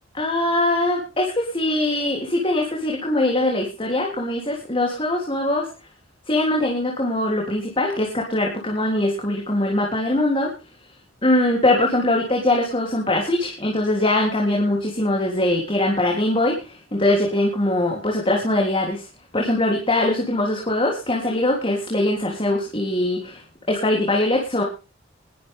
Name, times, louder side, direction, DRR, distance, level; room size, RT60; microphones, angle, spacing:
voice 1, 0.1-5.7 6.3-10.5 11.2-19.0 19.3-23.4 23.7-24.6, left 1 dB, 25° left, -1 dB, 3.6 m, -22 dB
20.5 x 10.0 x 3.7 m, 0.32 s
head